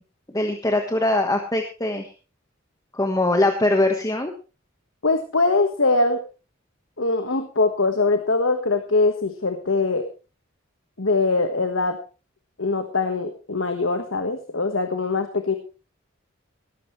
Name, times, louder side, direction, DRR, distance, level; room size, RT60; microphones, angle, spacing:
voice 1, 0.3-2.1 2.9-4.3, left 2 dB, 20° left, 4 dB, 1.3 m, -22 dB
voice 2, 5.0-6.2 7.0-10.1 11.0-12.0 12.6-15.5, left 3 dB, 75° left, 7 dB, 1.5 m, -22 dB
17.5 x 14.0 x 3.2 m, 0.33 s
head